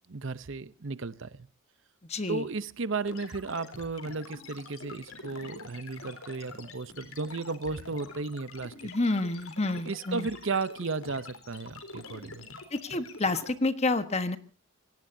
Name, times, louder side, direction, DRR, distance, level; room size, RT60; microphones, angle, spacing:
voice 1, 0.1-1.5 2.3-8.9 9.8-12.4, right 4 dB, 60° right, 0.8 m, -34 dB
voice 2, 2.1-2.5 8.8-10.3 12.7-14.4, left 2 dB, 30° left, 1.3 m, -29 dB
sound 1, 3.1-13.5, left 3 dB, 75° left, 3.8 m, -46 dB
26.5 x 17.5 x 2.7 m
head